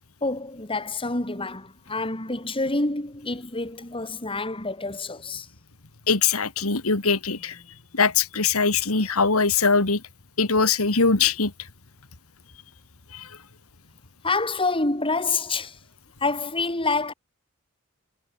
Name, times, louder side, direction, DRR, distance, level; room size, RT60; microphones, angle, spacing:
voice 1, 0.2-5.5 8.9-9.0 14.2-15.8 16.2-17.1, left 3 dB, 25° left, 3.1 m, -27 dB
voice 2, 6.1-7.5 7.9-10.0 10.4-11.5 13.1-13.2, left 4 dB, 80° left, 2.4 m, -21 dB
head